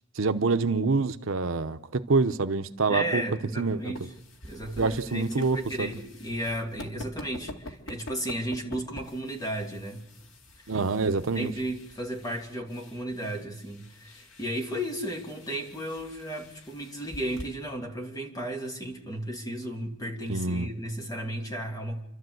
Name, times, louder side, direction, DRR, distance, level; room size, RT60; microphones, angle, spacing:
voice 1, 0.2-3.2 3.6-3.9 4.8-5.9 10.7-11.5 20.3-20.7, right 4 dB, 80° right, 10 dB, 0.8 m, -26 dB
voice 2, 2.9-4.1 4.4-10.0 11.3-22.0, equal, 20° left, 2 dB, 2.6 m, -34 dB
sound 1, 3.5-17.4, left 1 dB, 75° left, 2.3 m, -47 dB
28.5 x 12.5 x 7.9 m, 0.87 s
head